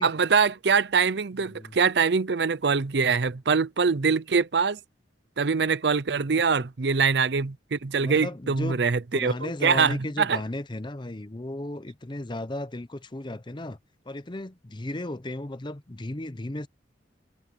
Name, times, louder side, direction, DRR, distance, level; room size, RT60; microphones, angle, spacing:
voice 1, 0.0-4.8 5.4-10.4, right 5 dB, 60° right, 0.6 m, -24 dB
voice 2, 1.4-1.8 6.3-6.4 8.0-8.8 9.1-13.8 14.1-16.7, left 1 dB, 25° left, 0.8 m, -35 dB
head